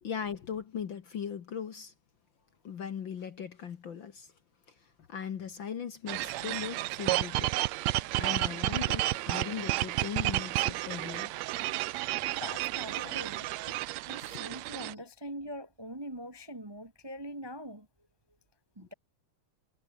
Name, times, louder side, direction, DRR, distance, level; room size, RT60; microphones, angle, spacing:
voice 1, 0.0-1.9 2.6-4.3 5.1-7.5 8.0-11.3 13.0-13.2 13.6-13.7, left 7 dB, 50° left, 1.5 m, -39 dB
sound 1, 6.1-14.9, right 17 dB, 75° right, 1.7 m, -32 dB
voice 2, 12.4-13.4 14.1-17.9 18.8-18.9, equal, 40° right, 0.3 m, -43 dB
omnidirectional pair, 3.6 m